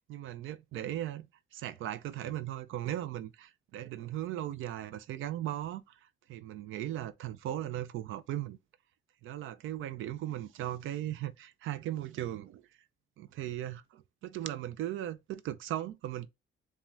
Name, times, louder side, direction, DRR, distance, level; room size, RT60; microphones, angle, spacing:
voice 1, 0.1-6.0 6.3-8.6 9.2-12.6 13.2-16.3, right 12 dB, 80° right, 0.5 m, -38 dB
7.1 x 2.4 x 2.5 m
cardioid pair, 90°, 20 cm